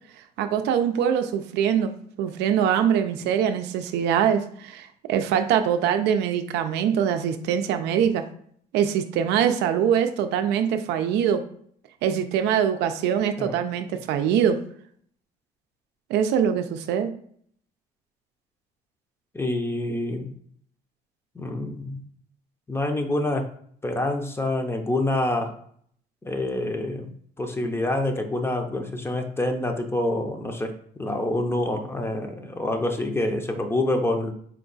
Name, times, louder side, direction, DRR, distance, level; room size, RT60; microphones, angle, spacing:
voice 1, 0.4-1.9 2.2-8.2 8.7-11.4 12.0-14.6 16.1-17.1, right 8 dB, 85° right, 8 dB, 0.5 m, -23 dB
voice 2, 19.3-20.3 21.4-22.0 22.7-23.5 23.8-25.5 26.2-30.7 31.0-34.3, left 1 dB, 15° left, 5 dB, 0.6 m, -27 dB
4.4 x 2.3 x 3.9 m, 0.62 s
cardioid pair, 110°, 17 cm